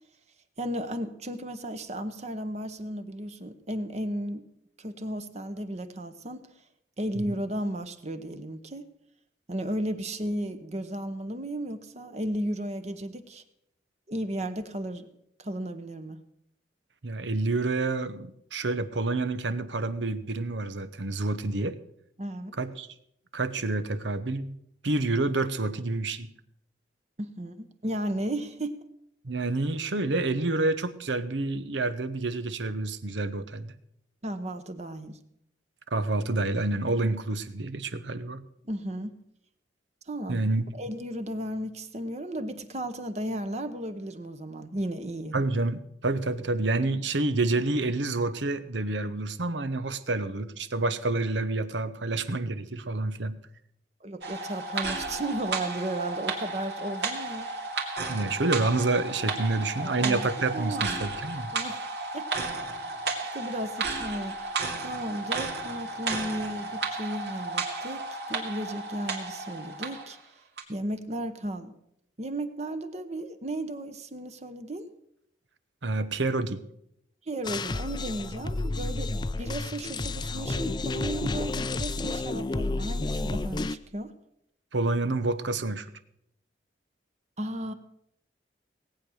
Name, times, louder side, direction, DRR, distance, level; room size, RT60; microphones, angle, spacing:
voice 1, 0.6-4.4 4.8-6.5 7.0-8.9 9.5-13.4 14.1-15.1 15.4-16.2 22.2-22.5 27.2-28.8 34.2-35.2 38.6-39.2 40.1-40.4 40.8-45.4 54.0-57.7 59.8-60.3 60.5-61.0 61.5-61.9 62.1-62.2 63.3-70.2 70.7-71.7 72.2-74.9 77.3-84.1 87.4-87.7, right 1 dB, 40° right, 9 dB, 1.0 m, -34 dB
voice 2, 17.0-21.8 22.6-22.9 23.3-24.6 24.8-26.3 29.2-33.7 35.9-38.4 40.3-40.7 45.3-53.4 58.1-61.5 75.8-76.6 84.7-85.9, right 2 dB, 90° right, 13 dB, 1.0 m, -28 dB
sound 1, 54.2-70.1 70.6-70.7, right 3 dB, 70° right, 2.5 m, -33 dB
sound 2, 77.4-83.8, left 2 dB, 25° left, 0.4 m, -31 dB
18.5 x 8.7 x 6.4 m, 0.75 s
head